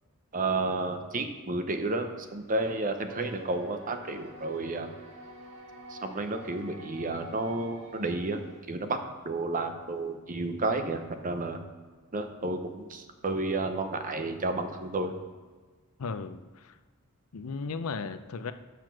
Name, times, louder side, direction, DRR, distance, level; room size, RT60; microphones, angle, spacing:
voice 1, 0.3-4.9 5.9-8.4 8.7-9.0 9.2-11.6 12.1-15.2, right 2 dB, 40° right, 7 dB, 0.7 m, -31 dB
sound 1, 3.1-8.6, right 1 dB, 65° right, 1.9 m, -47 dB
voice 2, 16.0-16.8 17.3-18.5, left 4 dB, 75° left, 11 dB, 0.5 m, -36 dB
7.0 x 5.9 x 6.1 m, 1.4 s
head